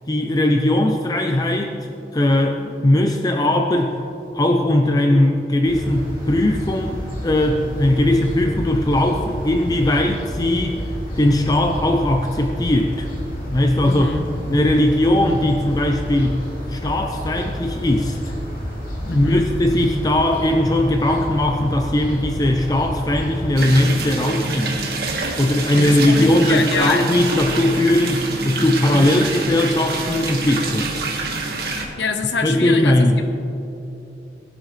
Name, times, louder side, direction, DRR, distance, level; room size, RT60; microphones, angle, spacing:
voice 1, 0.1-4.0 4.3-10.8 11.2-13.1 13.5-14.1 14.5-18.3 19.0-24.8 25.4-31.0 32.4-33.2, left 1 dB, 20° left, 4 dB, 0.5 m, -19 dB
sound 1, 5.6-23.7, equal, 45° left, 3.5 m, -30 dB
voice 2, 13.8-14.2 19.1-19.5 25.8-27.1 28.9-29.3 32.0-33.1, left 3 dB, 85° left, 6 dB, 1.1 m, -25 dB
sound 2, 23.6-31.9, right 3 dB, 60° right, 1.6 m, -26 dB
19.5 x 11.0 x 3.3 m, 2.9 s
head